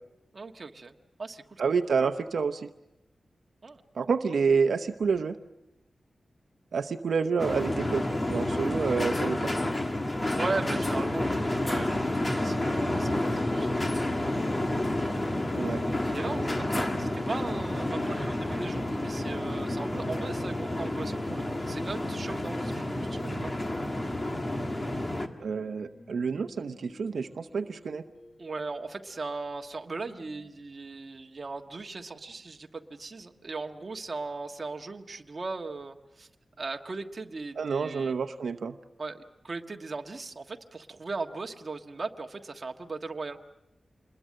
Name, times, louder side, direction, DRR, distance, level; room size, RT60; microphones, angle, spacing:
voice 1, 0.3-0.9 1.2-1.6 3.6-3.8 10.4-14.1 15.0-15.1 16.1-23.5 28.4-36.3 36.6-38.1 39.0-43.4, right 3 dB, 40° right, 4 dB, 1.5 m, -38 dB
voice 2, 1.6-2.7 3.9-5.4 6.7-9.5 15.6-15.8 25.4-28.0 37.6-38.8, right 5 dB, 90° right, 8 dB, 0.8 m, -28 dB
sound 1, 7.4-25.3, left 1 dB, 25° left, 1.7 m, -30 dB
sound 2, 17.4-30.5, left 1 dB, 50° left, 7.3 m, -54 dB
27.0 x 21.5 x 7.6 m, 0.89 s
wide cardioid pair, 130°, 0 cm